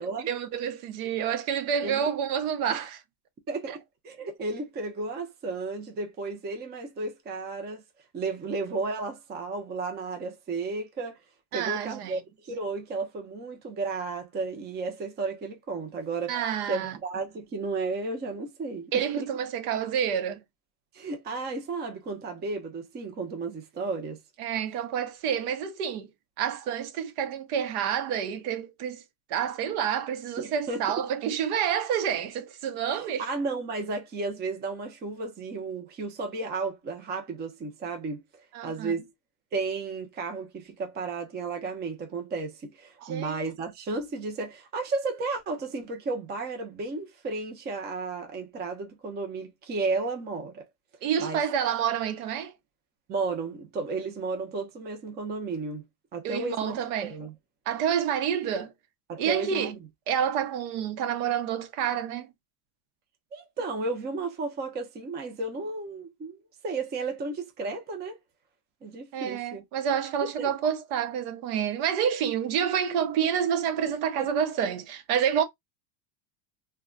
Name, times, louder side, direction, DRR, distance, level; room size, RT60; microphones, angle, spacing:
voice 1, 0.2-3.0 3.7-3.8 11.5-12.2 16.3-17.0 18.9-20.4 24.4-26.1 26.4-29.0 29.3-33.3 38.5-39.0 43.0-43.4 51.0-52.5 56.2-57.1 57.7-58.7 59.2-59.7 60.1-62.3 69.1-75.4, right 8 dB, 70° right, 0.8 m, -28 dB
voice 2, 3.5-7.8 8.1-11.2 11.5-16.4 16.7-19.3 20.9-24.2 30.4-30.8 32.9-38.2 38.6-39.1 39.5-50.6 51.2-51.4 53.1-55.8 56.1-57.3 59.1-59.8 63.3-66.4 66.6-68.2 68.8-69.6 70.2-70.5 74.2-74.3, right 3 dB, 20° right, 0.6 m, -33 dB
2.3 x 2.1 x 3.6 m
supercardioid pair, 135°, 46 cm